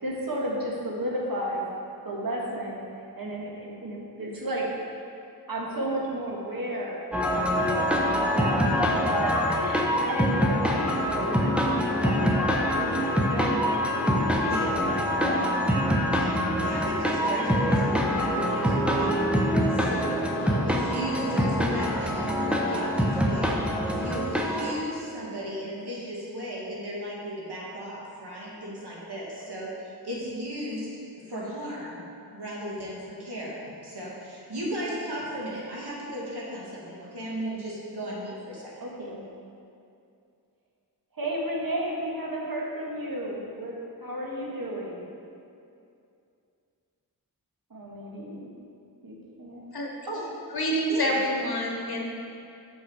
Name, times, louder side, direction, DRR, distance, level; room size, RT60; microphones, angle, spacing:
voice 1, 0.0-1.6 2.0-2.8 3.1-4.7 5.5-7.0 7.3-11.3 12.0-15.6 19.6-20.0 38.8-39.2 41.1-45.0 47.7-48.5 49.0-49.6 50.1-50.2 50.9-51.2, right 1 dB, 60° right, -3 dB, 1.5 m, -33 dB
sound 1, 7.1-24.7, equal, 5° right, 0.8 m, -25 dB
voice 2, 14.5-14.8 16.1-19.1 19.7-23.6 23.9-30.9 31.2-32.0 32.3-38.7, right 1 dB, 75° right, -5 dB, 1.8 m, -36 dB
voice 3, 50.5-52.0, equal, 65° left, -1 dB, 1.2 m, -27 dB
6.4 x 6.0 x 4.8 m, 2.5 s
wide cardioid pair, 50°, 40 cm